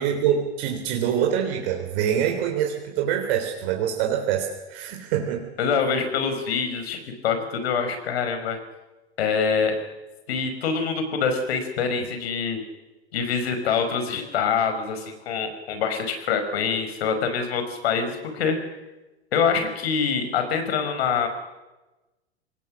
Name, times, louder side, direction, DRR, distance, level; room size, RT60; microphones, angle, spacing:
voice 1, 0.0-5.5, right 9 dB, 55° right, 2 dB, 3.8 m, -25 dB
voice 2, 5.6-8.6 9.2-9.7 10.3-12.6 13.1-18.6 19.3-21.3, left 6 dB, 65° left, 7 dB, 5.3 m, -25 dB
26.0 x 20.0 x 6.4 m, 1.1 s
hypercardioid pair, 100°, 33 cm